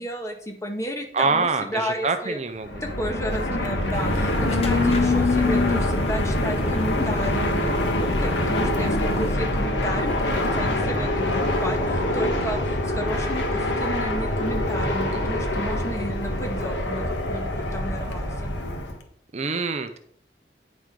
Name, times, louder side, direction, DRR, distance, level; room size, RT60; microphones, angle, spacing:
voice 1, 0.0-2.4 2.8-7.7 8.0-18.5, equal, 15° left, 3 dB, 1.6 m, -32 dB
voice 2, 1.1-2.7 15.1-15.2 19.3-20.0, right 4 dB, 40° right, 8 dB, 0.6 m, -25 dB
Fixed-wing aircraft airplane, 2.6-19.0, left 1 dB, 90° left, 1.6 m, -25 dB
sound 1, 3.9-9.4, left 3 dB, 35° left, 1.0 m, -27 dB
9.8 x 6.3 x 5.3 m, 0.63 s
head